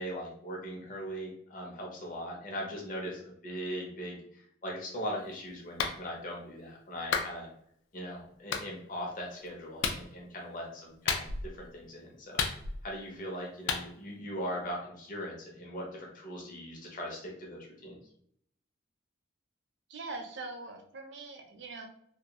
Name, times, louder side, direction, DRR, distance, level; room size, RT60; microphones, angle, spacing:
voice 1, 0.0-7.5 7.9-11.3 11.5-12.4 12.8-18.0, equal, 40° left, -2 dB, 0.7 m, -40 dB
Clapping, 5.8-6.0 7.1-7.3 8.5-8.7 9.8-10.0 11.1-11.5 12.4-12.9 13.7-13.9, left 5 dB, 65° left, 0.3 m, -31 dB
voice 2, 19.9-21.9, right 3 dB, 60° right, 4 dB, 0.5 m, -42 dB
2.3 x 2.2 x 2.8 m, 0.69 s
head